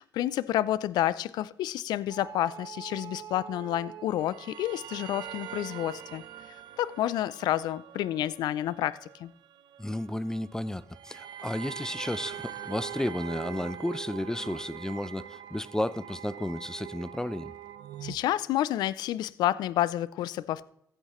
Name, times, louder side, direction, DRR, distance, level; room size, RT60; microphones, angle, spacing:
voice 1, 0.0-6.2 6.8-9.3 18.0-20.6, left 13 dB, 90° left, 0.3 m, -29 dB
sound 1, 2.1-18.2, right 10 dB, 85° right, 0.5 m, -43 dB
voice 2, 9.8-17.5, left 1 dB, 10° left, 0.4 m, -33 dB
15.5 x 8.7 x 3.0 m
cardioid pair, 80°, 7 cm